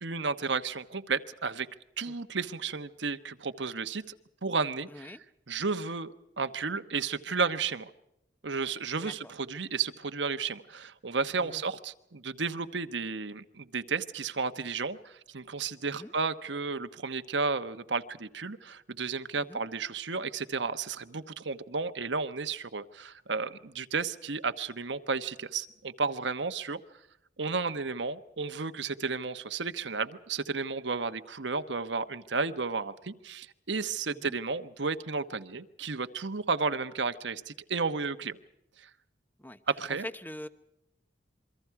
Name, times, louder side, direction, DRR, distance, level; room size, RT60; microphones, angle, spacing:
voice 1, 0.0-1.7 2.0-4.0 4.4-5.1 5.5-7.9 8.4-26.8 27.4-38.4 38.8-38.9 39.7-40.0, right 4 dB, 80° right, 10 dB, 1.2 m, -33 dB
voice 2, 4.9-5.2 9.0-9.3 11.4-11.6 15.8-16.1 19.3-19.6 34.1-34.4 39.4-39.6 40.0-40.5, left 1 dB, 10° left, 11 dB, 0.9 m, -44 dB
27.5 x 24.0 x 4.8 m, 0.86 s
head